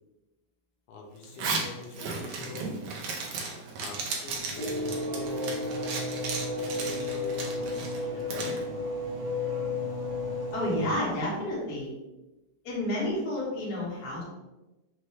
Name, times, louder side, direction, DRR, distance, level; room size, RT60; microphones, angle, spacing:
voice 1, 0.9-2.7 3.8-5.5 6.4-8.7, left 4 dB, 80° left, 0 dB, 2.1 m, -44 dB
sound 1, 1.2-11.2, equal, 65° left, 2.3 m, -40 dB
Zipper (clothing), 1.2-8.6, right 4 dB, 75° right, 1.4 m, -35 dB
Race car auto racing / Accelerating revving vroom, 4.3-11.5, left 3 dB, 90° right, 1.2 m, -34 dB
voice 2, 10.5-11.9 12.6-14.2, left 1 dB, 45° left, -6 dB, 1.4 m, -30 dB
6.0 x 2.3 x 3.2 m, 1.0 s
omnidirectional pair, 3.5 m